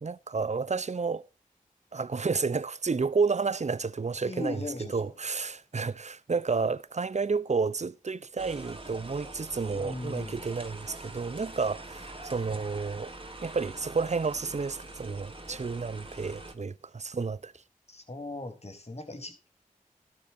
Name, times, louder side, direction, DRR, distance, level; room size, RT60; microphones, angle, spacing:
voice 1, 0.0-1.3 1.9-4.6 4.9-13.1 13.4-17.5, right 4 dB, 50° right, 0.7 m, -31 dB
voice 2, 4.2-5.1 9.7-10.5 17.9-19.6, left 2 dB, 45° left, 3.8 m, -39 dB
sound 1, 8.4-16.5, right 2 dB, 35° right, 3.0 m, -44 dB
15.5 x 12.5 x 2.7 m
cardioid pair, 45°, 15 cm